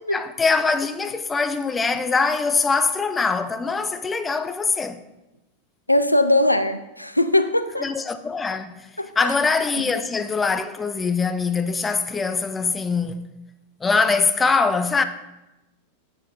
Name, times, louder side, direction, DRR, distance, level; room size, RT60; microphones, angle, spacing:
voice 1, 0.1-5.0 7.8-8.9 9.2-13.3 13.8-15.0, left 4 dB, 15° left, 0.5 m, -23 dB
voice 2, 5.9-7.9 9.0-9.3 9.8-9.9, left 1 dB, 85° left, 0.4 m, -20 dB
7.3 x 6.7 x 3.8 m
figure-of-eight pair, 90°, 0 cm